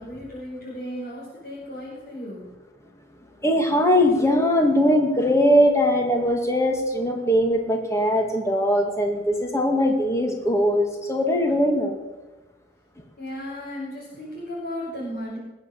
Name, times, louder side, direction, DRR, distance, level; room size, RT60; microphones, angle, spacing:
voice 1, 0.0-2.4 13.2-15.4, equal, 55° left, -9 dB, 5.5 m, -35 dB
voice 2, 3.4-12.0, equal, 15° left, 3 dB, 2.1 m, -21 dB
20.0 x 8.4 x 7.2 m, 1.1 s
head